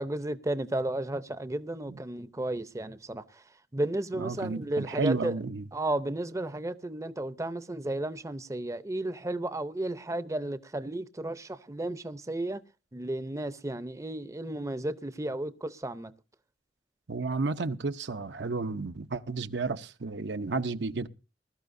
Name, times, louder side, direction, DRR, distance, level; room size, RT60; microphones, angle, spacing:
voice 1, 0.0-3.2 3.7-5.3 5.7-12.6 12.9-16.1, right 1 dB, 20° right, 0.6 m, -33 dB
voice 2, 4.2-5.6 17.1-21.1, right 3 dB, 70° right, 0.8 m, -32 dB
20.5 x 13.0 x 2.6 m
head